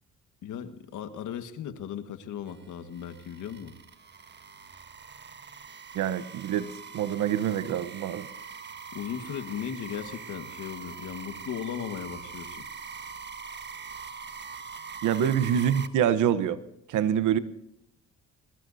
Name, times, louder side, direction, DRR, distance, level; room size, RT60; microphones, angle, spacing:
voice 1, 0.4-3.7 8.9-12.7 15.2-15.3, left 8 dB, 80° left, 9 dB, 1.6 m, -37 dB
sound 1, 2.5-15.9, right 5 dB, 35° right, 1.3 m, -43 dB
voice 2, 5.9-6.7 6.9-8.3 15.0-16.6 16.9-17.4, right 9 dB, 80° right, 14 dB, 1.0 m, -25 dB
21.5 x 20.5 x 2.7 m, 0.81 s
cardioid pair, 90°, 30 cm